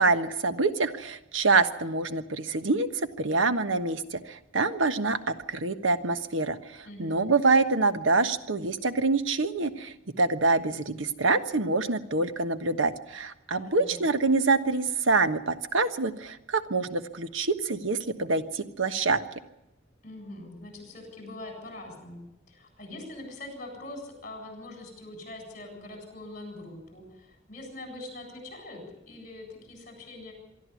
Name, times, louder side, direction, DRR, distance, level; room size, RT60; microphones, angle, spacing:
voice 1, 0.0-19.2, right 3 dB, 90° right, 10 dB, 1.3 m, -26 dB
voice 2, 6.8-7.3 13.5-14.2 20.0-30.3, left 2 dB, 40° left, 3 dB, 7.8 m, -43 dB
24.0 x 13.0 x 8.4 m, 0.87 s
head